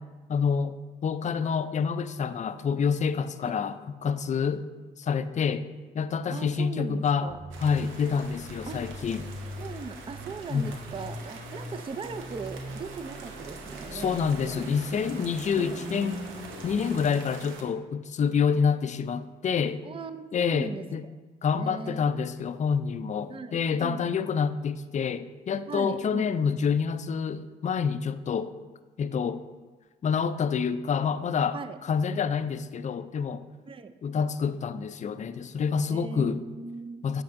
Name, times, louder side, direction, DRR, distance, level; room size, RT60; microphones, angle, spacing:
voice 1, 0.3-0.8 1.0-4.6 5.0-5.6 5.9-7.3 7.6-9.3 10.5-10.7 13.9-16.2 16.6-19.8 20.3-21.1 21.4-28.5 29.0-29.4 30.0-33.4 34.0-36.4 37.0-37.2, left 6 dB, 40° left, 13 dB, 0.4 m, -27 dB
voice 2, 6.3-7.4 8.7-8.9 9.6-14.2 14.5-14.6 15.6-15.8 19.8-21.1 21.5-22.0 23.3-24.1 25.7-26.3 31.5-31.8 33.7-33.9 35.9-37.0, right 4 dB, 25° right, 11 dB, 0.4 m, -39 dB
sound 1, 7.3-17.1, equal, 10° right, 1.3 m, -41 dB
sound 2, 7.5-17.6, right 4 dB, 85° right, 0.8 m, -45 dB
8.5 x 5.2 x 2.6 m, 1.3 s
supercardioid pair, 55°, 20 cm